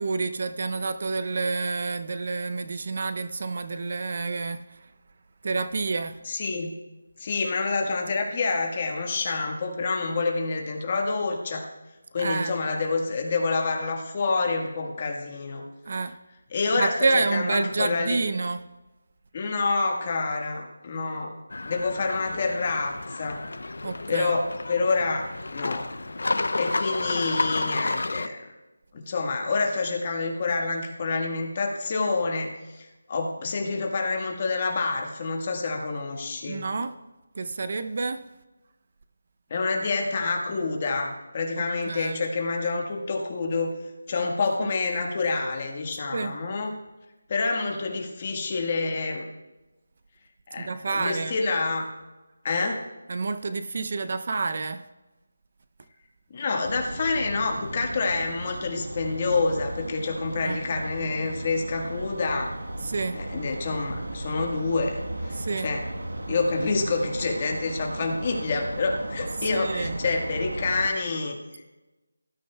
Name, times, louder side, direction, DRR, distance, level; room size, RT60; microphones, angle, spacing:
voice 1, 0.0-4.9 5.4-6.2 12.2-12.5 15.9-16.1 16.8-18.6 23.8-24.3 36.4-37.0 37.4-38.2 41.9-42.2 44.6-44.7 46.1-46.4 50.6-51.3 53.1-54.8 60.4-60.7 62.8-63.2 65.3-65.7 69.5-70.0, right 3 dB, 45° right, 0.5 m, -28 dB
voice 2, 6.2-6.7 7.2-11.7 12.1-15.6 16.5-18.2 19.3-21.3 21.6-23.4 24.1-25.2 25.5-25.8 26.6-28.5 28.9-36.6 39.5-43.7 44.1-46.7 47.3-49.2 50.5-51.9 52.4-52.8 56.3-62.5 63.2-65.9 66.3-71.4, left 3 dB, 30° left, 1.4 m, -27 dB
sound 1, 21.5-28.3, left 2 dB, 75° left, 0.6 m, -31 dB
sound 2, 56.6-70.9, right 1 dB, 90° right, 1.2 m, -36 dB
18.5 x 12.5 x 2.2 m
figure-of-eight pair, 170°, 0 cm